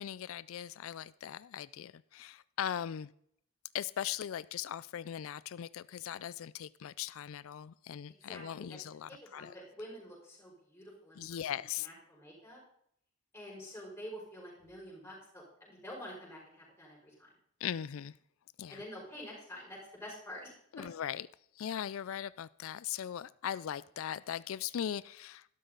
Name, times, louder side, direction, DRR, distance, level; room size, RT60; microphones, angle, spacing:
voice 1, 0.0-3.1 3.7-9.5 11.2-11.9 17.6-18.1 18.6-18.8 20.7-21.3 21.6-25.5, left 9 dB, 70° left, 19 dB, 0.4 m, -39 dB
voice 2, 8.3-8.8 9.1-11.4 11.8-12.6 13.3-17.3 18.7-20.8, equal, 10° left, -4 dB, 5.6 m, -48 dB
12.0 x 12.0 x 3.9 m, 0.68 s
head